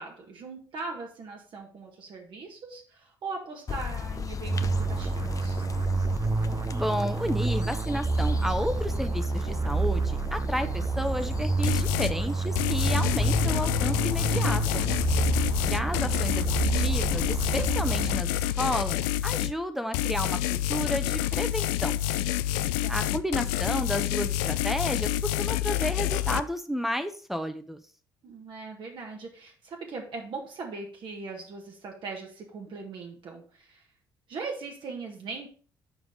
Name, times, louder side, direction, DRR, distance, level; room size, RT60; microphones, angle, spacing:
voice 1, 0.0-5.7 15.6-16.1 22.5-23.5 28.2-33.8 34.3-35.5, right 4 dB, 60° right, 0 dB, 1.8 m, -40 dB
sound 1, 3.7-15.9, left 5 dB, 40° left, 0.6 m, -36 dB
sound 2, 4.4-18.6, right 4 dB, 30° right, 0.7 m, -28 dB
voice 2, 6.7-14.9 15.6-22.0 22.9-27.8, equal, 5° right, 9 dB, 0.9 m, -32 dB
sound 3, 11.6-12.2 12.5-19.5 19.9-26.4, left 13 dB, 85° left, 0.4 m, -28 dB
7.2 x 4.8 x 5.2 m, 0.41 s
hypercardioid pair, 60°, 9 cm